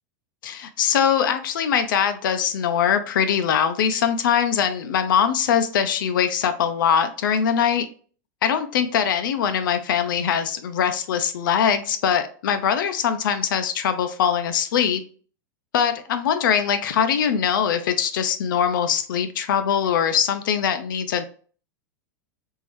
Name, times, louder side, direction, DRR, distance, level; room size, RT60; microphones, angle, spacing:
voice 1, 0.4-7.9 8.4-15.0 15.7-21.3, left 8 dB, 85° left, 9 dB, 0.5 m, -22 dB
3.7 x 2.6 x 3.0 m, 0.42 s
supercardioid pair, 175°, 11 cm